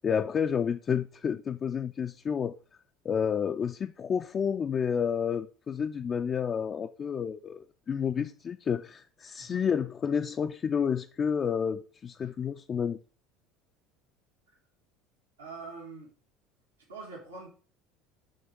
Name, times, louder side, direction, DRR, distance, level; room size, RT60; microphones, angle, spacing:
voice 1, 0.0-2.6 3.0-13.0, left 7 dB, 35° left, 0.3 m, -30 dB
voice 2, 9.4-9.9 12.2-12.3 15.4-16.1 16.9-17.5, right 4 dB, 85° right, 1.5 m, -44 dB
6.4 x 3.5 x 6.0 m
hypercardioid pair, 70°, 0 cm